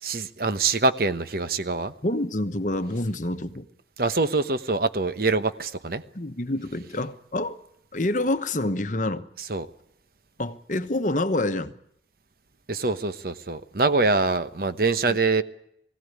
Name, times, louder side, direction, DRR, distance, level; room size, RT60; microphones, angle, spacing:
voice 1, 0.0-1.9 4.0-6.0 9.4-9.7 12.7-15.4, right 3 dB, 55° right, 1.0 m, -24 dB
voice 2, 2.0-3.7 6.1-7.6 7.9-9.3 10.4-11.7 15.1-15.2, left 1 dB, 45° left, 1.1 m, -27 dB
21.0 x 16.5 x 9.5 m
head